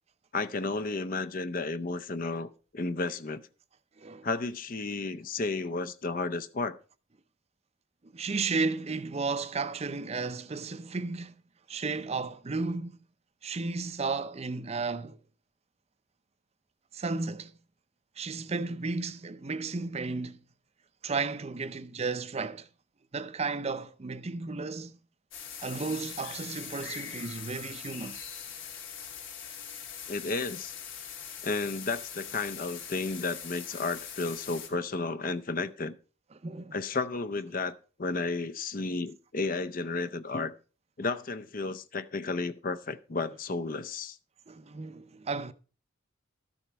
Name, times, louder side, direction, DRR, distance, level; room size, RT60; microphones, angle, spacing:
voice 1, 0.3-3.4 4.2-6.8 30.1-30.7 31.4-35.9 36.7-40.5 41.0-44.2, left 3 dB, 45° left, 0.6 m, -33 dB
voice 2, 8.1-11.3 11.7-13.0 13.4-15.2 16.9-17.6 18.2-20.4 21.0-22.7 23.1-25.0 25.6-28.2 36.4-36.8 44.5-45.5, right 4 dB, 30° right, 0.5 m, -33 dB
sound 1, 25.3-34.7, left 8 dB, 75° left, 2.4 m, -42 dB
13.0 x 7.1 x 4.6 m
head